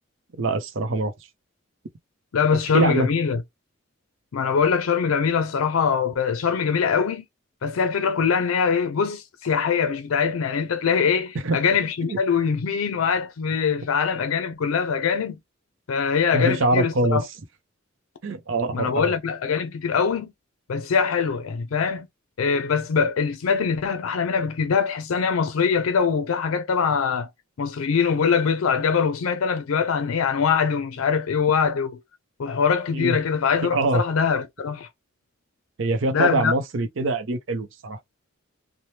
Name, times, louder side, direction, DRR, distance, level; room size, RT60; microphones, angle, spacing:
voice 1, 0.3-1.1 2.7-3.1 11.4-11.6 12.0-12.2 16.3-17.3 18.2-19.1 32.9-33.2 33.7-34.0 35.8-38.0, right 2 dB, 70° right, 0.6 m, -24 dB
voice 2, 2.3-3.4 4.3-7.2 7.6-15.4 15.9-17.2 18.7-20.3 20.7-22.1 22.4-27.3 27.6-32.0 32.4-34.9 36.1-36.5, left 6 dB, 90° left, 0.4 m, -23 dB
3.2 x 2.1 x 2.7 m
head